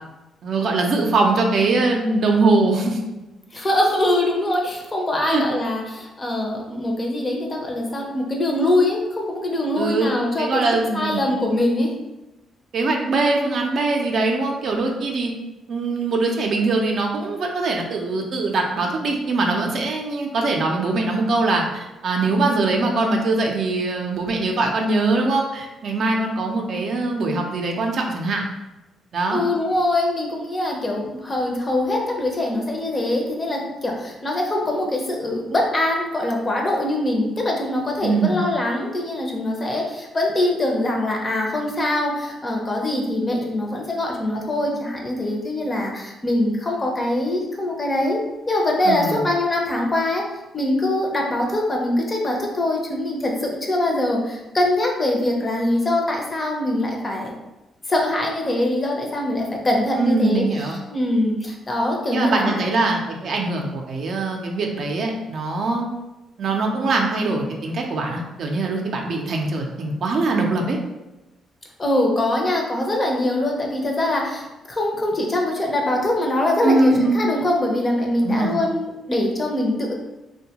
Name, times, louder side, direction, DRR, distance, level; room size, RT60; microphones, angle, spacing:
voice 1, 0.4-3.0 5.2-5.4 9.8-11.2 12.7-15.3 15.7-28.4 29.1-29.4 38.0-38.4 48.8-49.3 60.0-60.8 62.1-65.9 66.4-70.8 76.6-77.2 78.2-78.6, right 3 dB, 60° right, 1 dB, 0.4 m, -22 dB
voice 2, 3.5-11.9 29.3-50.2 50.5-57.3 57.9-62.6 71.8-79.9, left 1 dB, 25° left, 0 dB, 0.6 m, -23 dB
2.6 x 2.2 x 2.8 m, 1.0 s
cardioid pair, 90°, 0 cm